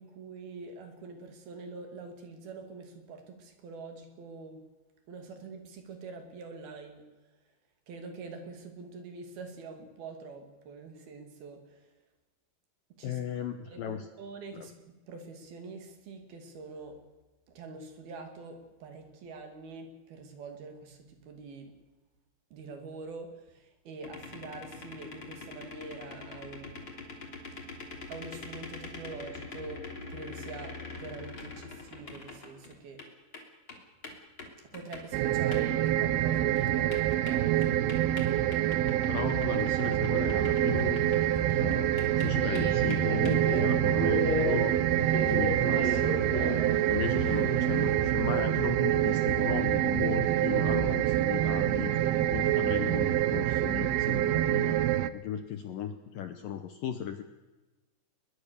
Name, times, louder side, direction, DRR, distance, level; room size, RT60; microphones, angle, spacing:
voice 1, 0.0-4.7 5.1-7.0 7.9-11.9 13.0-14.7 15.1-17.0 17.5-21.7 22.5-26.9 28.1-33.3 34.6-37.7, right 3 dB, 60° right, 6 dB, 4.3 m, -45 dB
voice 2, 13.0-14.0 39.1-41.9 42.2-44.8 45.1-46.2 46.9-54.8 55.1-57.2, left 9 dB, 70° left, 9 dB, 2.2 m, -36 dB
sound 1, 24.0-33.1 33.3-35.2 35.5-35.9 36.2-36.3 36.6-36.7 36.9-41.4 41.7-43.4, left 3 dB, 30° left, 3.5 m, -44 dB
sound 2, 35.1-55.1, right 13 dB, 75° right, 2.4 m, -26 dB
Subway metro underground, 40.2-48.1, left 2 dB, 10° right, 7.6 m, -35 dB
22.0 x 21.0 x 6.9 m, 1.2 s
omnidirectional pair, 5.1 m